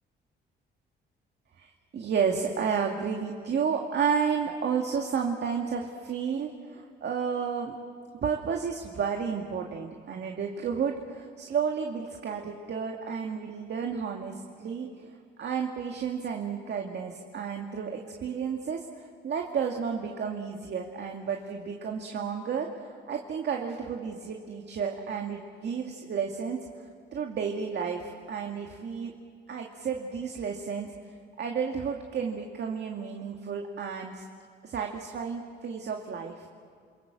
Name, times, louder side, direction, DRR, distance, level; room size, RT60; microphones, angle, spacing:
voice 1, 1.6-7.8 8.2-14.9 15.4-26.7 27.1-29.1 29.5-30.9 31.4-34.2 34.6-36.5, right 6 dB, 60° right, 2 dB, 2.2 m, -32 dB
28.0 x 23.0 x 7.5 m, 2.2 s
cardioid pair, 90°, 20 cm